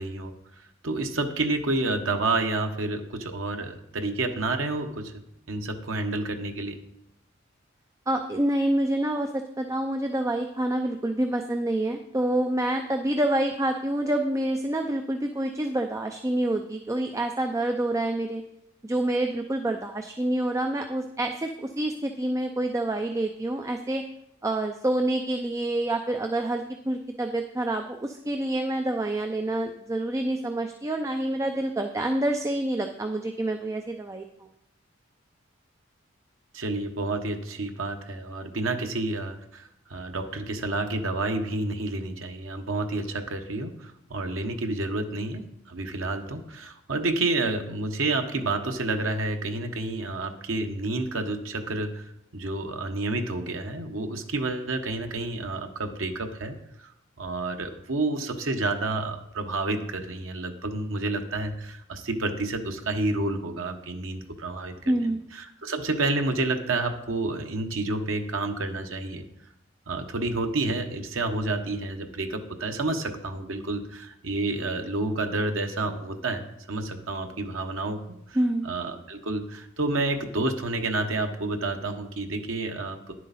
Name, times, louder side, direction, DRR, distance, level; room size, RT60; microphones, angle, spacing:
voice 1, 0.0-5.1 5.5-6.8 36.5-56.9 57.2-69.2 69.9-78.0 78.3-78.4 78.6-83.1, right 2 dB, 75° right, 5 dB, 1.1 m, -29 dB
voice 2, 8.1-18.4 18.8-24.0 24.4-34.2 64.9-65.2 78.3-78.7, right 1 dB, 15° right, 5 dB, 0.4 m, -27 dB
10.5 x 7.6 x 4.1 m, 0.82 s
head